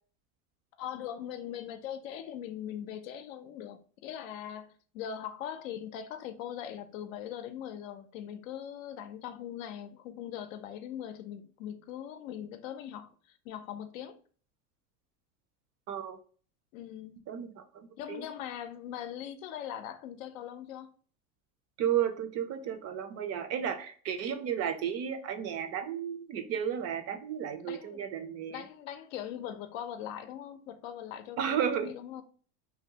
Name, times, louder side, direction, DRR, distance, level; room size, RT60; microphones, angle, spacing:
voice 1, 0.8-14.2 16.7-17.1 18.0-20.9 27.6-28.1 28.5-32.2, left 10 dB, 80° left, 0.5 m, -41 dB
voice 2, 15.9-16.2 17.3-18.3 21.8-28.6 31.4-31.9, right 8 dB, 40° right, 0.4 m, -33 dB
2.7 x 2.1 x 2.7 m
supercardioid pair, 115°, 40 cm